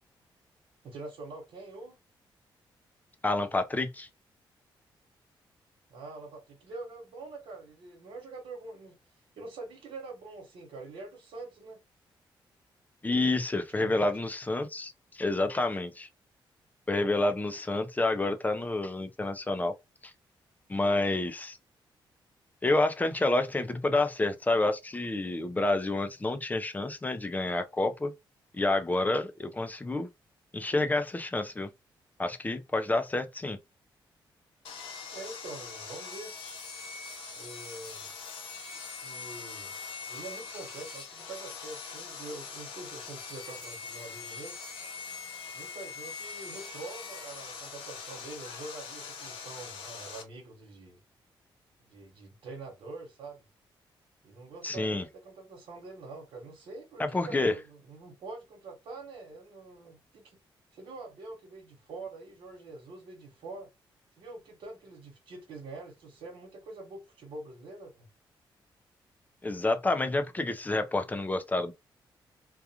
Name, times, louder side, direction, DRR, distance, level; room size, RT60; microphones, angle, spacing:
voice 1, 0.8-1.9 5.9-9.0 9.3-11.8 13.7-14.1 35.1-36.3 37.4-38.1 39.0-39.7 40.1-44.6 45.5-51.0 51.9-53.4 54.2-60.4 60.7-63.7 64.2-68.1, right 3 dB, 85° right, 1.1 m, -45 dB
voice 2, 3.2-4.1 13.0-16.1 16.9-19.7 20.0-20.1 20.7-21.6 22.6-28.1 28.5-30.1 30.5-31.7 32.2-33.6 54.6-55.0 57.0-57.5 69.4-71.7, left 2 dB, 20° left, 0.5 m, -29 dB
Sawing, 34.6-50.2, left 5 dB, 90° left, 0.7 m, -42 dB
2.4 x 2.3 x 2.7 m
cardioid pair, 90°, 9 cm